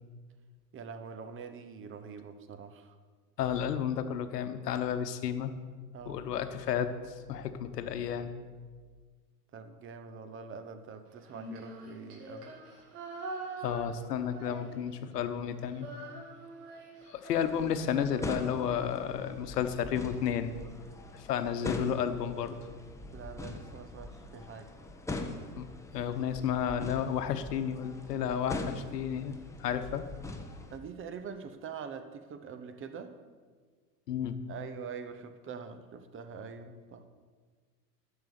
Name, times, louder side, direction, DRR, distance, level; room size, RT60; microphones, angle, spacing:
voice 1, 0.7-3.0 5.9-6.3 9.5-12.6 23.1-24.7 30.7-33.2 34.5-37.1, right 6 dB, 25° right, 9 dB, 1.0 m, -44 dB
voice 2, 3.4-5.5 6.1-8.3 13.6-15.9 17.1-20.5 21.1-22.6 25.6-25.7 25.9-30.1 34.1-34.4, left 8 dB, 75° left, 10 dB, 1.1 m, -32 dB
Female singing, 11.2-15.1 15.4-19.7, right 2 dB, 70° right, 2.5 m, -45 dB
sound 1, 17.4-30.8, left 2 dB, 5° left, 0.9 m, -42 dB
10.5 x 7.0 x 6.8 m, 1.6 s
hypercardioid pair, 95°, 48 cm